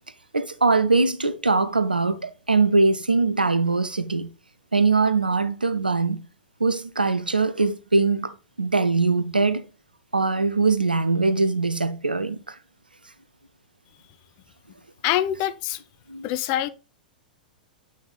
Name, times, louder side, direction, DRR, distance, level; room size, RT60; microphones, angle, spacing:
voice 1, 0.3-4.3 4.7-6.2 6.6-9.7 10.1-12.5 16.1-16.3, right 3 dB, 85° right, 0.7 m, -22 dB
voice 2, 15.0-15.8 16.2-16.7, left 13 dB, 40° left, 0.6 m, -24 dB
8.8 x 6.1 x 2.4 m
figure-of-eight pair, 100°, 5 cm